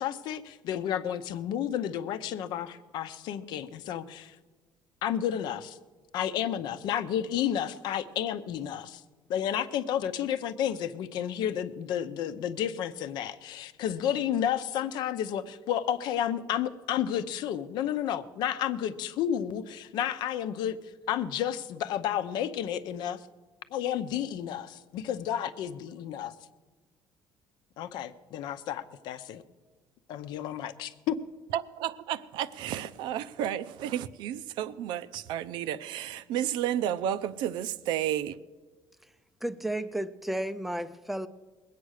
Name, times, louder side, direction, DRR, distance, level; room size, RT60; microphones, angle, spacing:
voice 1, 0.0-4.4 5.0-5.8 6.1-9.0 9.3-23.2 23.7-26.3 27.8-29.4 30.1-31.1, left 10 dB, 70° left, 11 dB, 0.7 m, -31 dB
voice 2, 31.5-38.4, right 11 dB, 75° right, 13 dB, 0.6 m, -32 dB
voice 3, 39.4-41.3, right 1 dB, ahead, 13 dB, 0.4 m, -33 dB
20.5 x 8.5 x 6.4 m, 1.3 s
cardioid pair, 165°, 8 cm